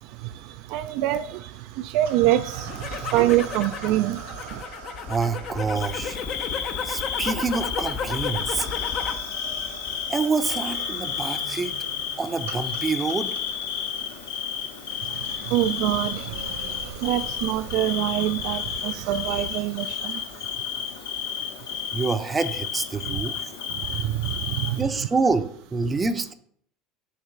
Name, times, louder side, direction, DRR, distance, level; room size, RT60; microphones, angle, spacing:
voice 1, 0.0-4.6 15.0-21.8 23.0-23.2 23.7-24.9 25.9-26.0, right 14 dB, 65° right, 10 dB, 0.3 m, -26 dB
sound 1, 2.1-19.5, right 5 dB, 85° right, 1.2 m, -43 dB
sound 2, 2.5-9.3 9.6-10.2, left 6 dB, 50° left, 0.8 m, -33 dB
voice 2, 5.1-6.2 6.8-8.7 10.1-11.7 12.2-13.3 21.9-23.5 24.8-26.3, right 4 dB, 20° right, 10 dB, 0.6 m, -26 dB
Bird / Cricket, 5.7-24.8, left 8 dB, 85° left, 0.8 m, -32 dB
6.6 x 3.1 x 5.8 m, 0.63 s
hypercardioid pair, 90°, 0 cm